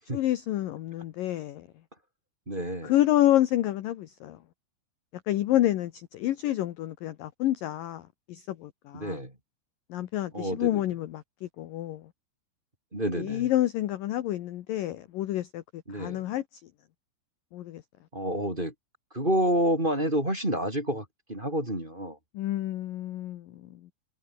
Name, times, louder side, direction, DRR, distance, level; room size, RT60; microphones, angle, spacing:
voice 1, 0.1-1.7 2.8-4.4 5.3-8.0 8.3-9.2 9.9-12.0 13.1-16.4 17.5-17.8 22.3-23.9, left 13 dB, 75° left, 2.1 m, -28 dB
voice 2, 2.5-2.9 8.9-9.3 10.3-10.8 12.9-13.5 15.9-16.2 18.1-18.7 19.1-22.2, equal, 10° right, 4.2 m, -29 dB
omnidirectional pair, 5.5 m